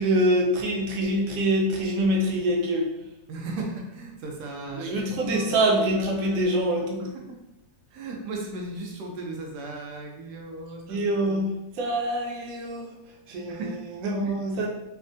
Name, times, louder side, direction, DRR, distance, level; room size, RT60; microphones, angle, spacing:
voice 1, 0.0-2.9 4.7-7.1 10.9-12.9 13.3-13.6 14.0-14.7, right 1 dB, 65° right, -1 dB, 1.0 m, -25 dB
voice 2, 3.3-5.6 5.9-6.4 6.7-7.4 7.9-11.3 13.5-13.8, right 2 dB, 90° right, 1 dB, 1.2 m, -37 dB
3.2 x 2.1 x 2.5 m, 0.97 s
omnidirectional pair, 1.7 m